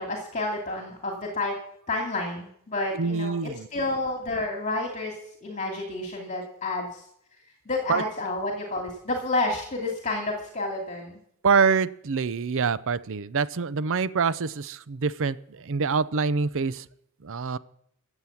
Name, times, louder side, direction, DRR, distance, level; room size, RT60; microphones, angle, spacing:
voice 1, 0.0-1.6 1.9-5.1 5.4-7.0 7.7-11.2, left 2 dB, 35° left, 0 dB, 2.4 m, -30 dB
voice 2, 2.9-3.7 7.9-8.0 11.4-16.8 17.2-17.6, right 5 dB, 60° right, 16 dB, 0.6 m, -25 dB
15.0 x 8.1 x 7.1 m, 0.70 s
head